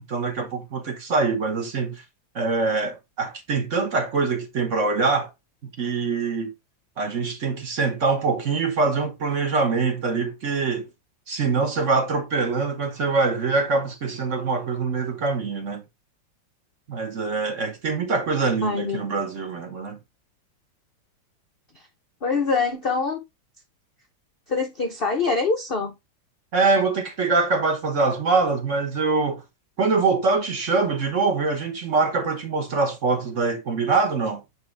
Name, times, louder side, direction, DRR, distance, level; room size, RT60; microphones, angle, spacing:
voice 1, 0.1-2.0 2.3-5.3 5.6-6.5 7.0-10.9 11.3-15.8 16.9-20.0 26.5-29.4 29.8-34.4, right 4 dB, 45° right, 1.3 m, -24 dB
voice 2, 18.6-19.0 21.7-21.8 22.2-23.2 24.5-26.0, left 4 dB, 65° left, 0.5 m, -24 dB
8.9 x 3.3 x 3.2 m
omnidirectional pair, 2.1 m